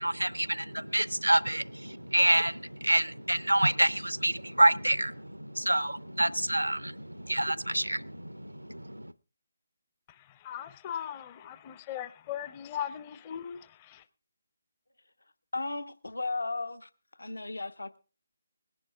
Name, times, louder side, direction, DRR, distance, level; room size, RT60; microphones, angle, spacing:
voice 1, 0.0-9.1, right 1 dB, 85° right, 0.6 m, -27 dB
voice 2, 10.4-14.0, left 9 dB, 25° left, 0.5 m, -38 dB
voice 3, 15.5-16.9 17.2-18.0, left 3 dB, 75° left, 0.7 m, -35 dB
20.5 x 11.0 x 3.6 m
figure-of-eight pair, 145°, 0 cm